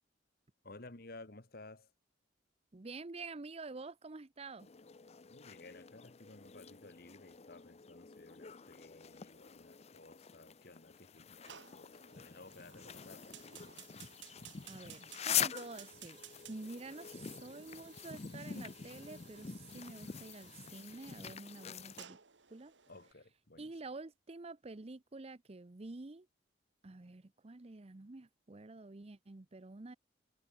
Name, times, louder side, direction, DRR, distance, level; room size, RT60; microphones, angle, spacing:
voice 1, 0.6-1.9 5.3-13.4 22.9-23.7, left 2 dB, 55° left, 1.9 m, -55 dB
voice 2, 2.7-4.7 14.7-16.2 16.5-22.2 22.5-22.7 23.6-26.3 26.8-30.0, right 3 dB, 35° right, 0.7 m, -48 dB
sound 1, 4.6-22.0, left 9 dB, 35° left, 0.6 m, -44 dB
Fire, 11.4-23.1, right 9 dB, 80° right, 2.7 m, -57 dB
head